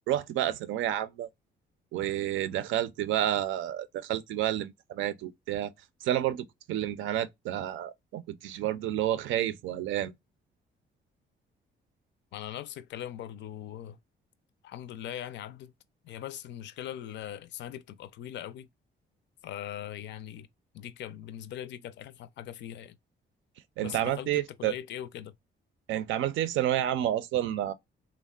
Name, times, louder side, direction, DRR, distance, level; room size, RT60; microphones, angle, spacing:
voice 1, 0.1-1.3 1.9-5.7 6.0-10.1 23.8-24.7 25.9-27.7, right 12 dB, 90° right, 0.4 m, -30 dB
voice 2, 12.3-14.0 14.6-15.7 16.0-18.7 19.4-20.5 20.7-23.0 23.8-25.3, left 11 dB, 70° left, 0.4 m, -40 dB
3.4 x 2.0 x 2.3 m
cardioid pair, 140°, 19 cm